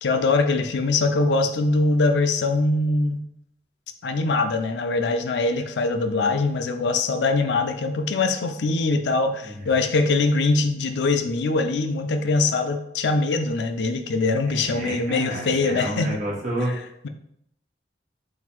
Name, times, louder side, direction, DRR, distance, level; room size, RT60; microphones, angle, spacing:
voice 1, 0.0-3.2 4.0-16.2, left 3 dB, 85° left, 7 dB, 0.4 m, -22 dB
voice 2, 14.5-17.1, right 1 dB, 45° right, -4 dB, 1.2 m, -30 dB
3.9 x 2.5 x 4.3 m, 0.75 s
head